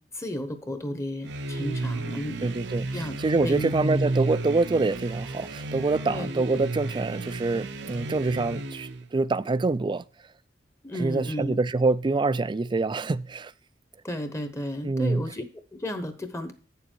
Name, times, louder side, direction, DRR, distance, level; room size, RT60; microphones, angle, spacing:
voice 1, 0.0-2.5 2.9-3.2 3.4-3.7 6.1-6.6 10.8-11.6 14.0-16.5, equal, 15° left, 1.0 m, -33 dB
sound 1, 1.2-9.1, right 2 dB, 70° right, 0.7 m, -32 dB
voice 2, 2.4-10.0 11.0-13.5 14.8-15.2, right 3 dB, 25° right, 0.3 m, -26 dB
8.6 x 6.9 x 4.5 m
head